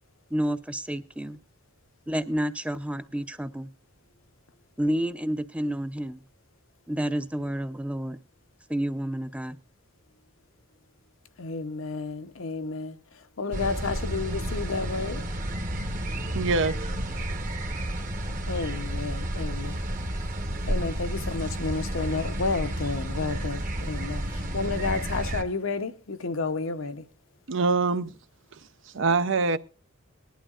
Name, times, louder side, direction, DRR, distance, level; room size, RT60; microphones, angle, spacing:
voice 1, 0.3-1.4 2.1-3.7 4.8-6.2 6.9-8.2 8.7-9.6, equal, 5° right, 0.6 m, -29 dB
voice 2, 11.4-13.0 13.4-15.2 18.5-19.7 20.6-24.2 24.5-27.0, left 3 dB, 75° left, 0.8 m, -31 dB
sound 1, 13.5-25.4, right 1 dB, 40° right, 1.1 m, -31 dB
voice 3, 16.3-16.9 27.5-28.1 28.9-29.6, right 4 dB, 60° right, 0.6 m, -24 dB
19.5 x 11.5 x 2.4 m
head